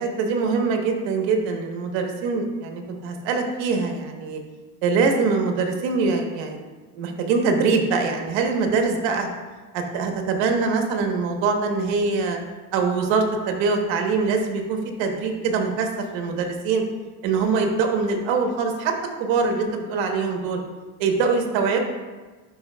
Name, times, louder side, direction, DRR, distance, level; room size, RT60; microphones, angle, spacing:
voice 1, 0.0-4.4 4.8-6.6 6.9-9.3 9.7-12.4 12.7-16.8 17.2-18.9 19.2-20.6 21.0-21.8, right 4 dB, 70° right, 4 dB, 1.3 m, -23 dB
11.5 x 5.0 x 2.3 m, 1.3 s
supercardioid pair, 85°, 46 cm